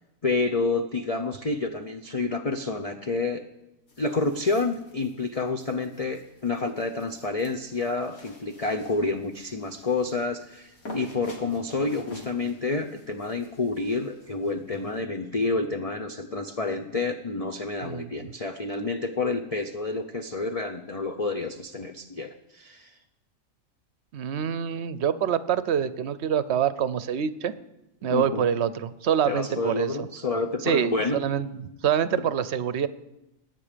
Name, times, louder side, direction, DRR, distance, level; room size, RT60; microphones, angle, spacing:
voice 1, 0.2-3.4 4.0-22.9 24.5-24.6 28.1-28.5 29.2-31.2 32.1-32.2, left 3 dB, 35° left, 4 dB, 0.6 m, -29 dB
sound 1, 3.9-15.0, left 1 dB, 85° left, 2.5 m, -48 dB
voice 2, 17.8-18.3 24.1-27.5 28.0-29.9 30.6-32.9, right 8 dB, 60° right, 14 dB, 0.9 m, -26 dB
21.5 x 9.1 x 5.1 m, 0.93 s
omnidirectional pair, 1.4 m